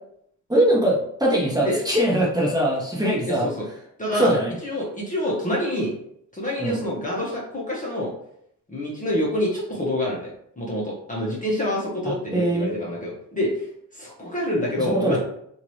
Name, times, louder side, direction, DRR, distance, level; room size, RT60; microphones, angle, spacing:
voice 1, 0.5-3.5 4.1-4.5 6.6-6.8 12.3-12.7 14.8-15.2, right 1 dB, 10° right, -4 dB, 1.3 m, -21 dB
voice 2, 3.3-3.6 4.0-4.3 4.6-5.9 6.3-8.1 8.7-13.7 13.9-15.2, left 1 dB, 20° left, -5 dB, 1.0 m, -27 dB
2.8 x 2.7 x 3.1 m, 0.71 s
supercardioid pair, 60°, 40 cm